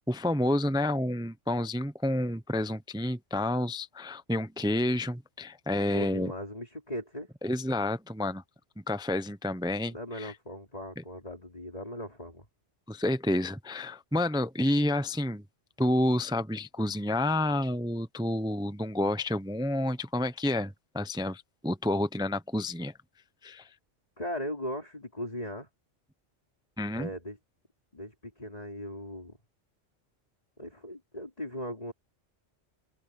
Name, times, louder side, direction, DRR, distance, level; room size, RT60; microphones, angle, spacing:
voice 1, 0.1-6.3 7.4-8.4 8.9-10.3 12.9-15.4 15.8-22.9 23.4-23.7 26.8-27.1, left 1 dB, 5° right, 0.4 m, -29 dB
voice 2, 5.9-7.3 9.9-12.5 24.2-25.7 26.9-27.4 27.9-29.4 30.6-31.9, equal, 30° left, 4.5 m, -38 dB
open air
omnidirectional pair, 1.2 m